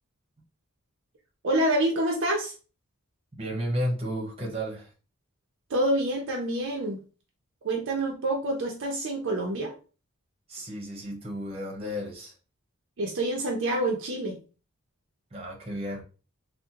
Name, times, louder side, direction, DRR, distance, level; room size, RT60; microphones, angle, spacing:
voice 1, 1.4-2.5 5.7-7.0 7.6-9.7 13.0-14.4, right 1 dB, 60° right, 0.6 m, -27 dB
voice 2, 3.4-4.9 10.5-12.3 15.3-16.0, equal, 30° right, 1.0 m, -32 dB
3.5 x 2.1 x 2.8 m
head